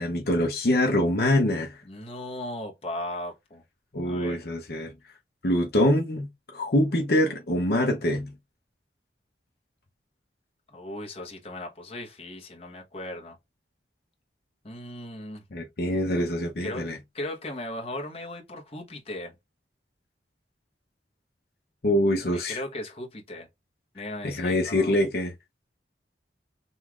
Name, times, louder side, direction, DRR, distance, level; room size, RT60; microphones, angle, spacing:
voice 1, 0.0-1.8 3.9-4.9 5.4-6.3 6.5-8.3 15.5-17.0 21.8-22.6 24.2-25.3, left 1 dB, 60° left, 0.8 m, -24 dB
voice 2, 1.8-3.6 4.0-4.4 10.7-13.4 14.6-15.4 16.6-16.9 17.1-19.3 22.3-23.5 23.9-24.9, left 1 dB, 30° left, 1.1 m, -37 dB
5.5 x 3.1 x 2.4 m
head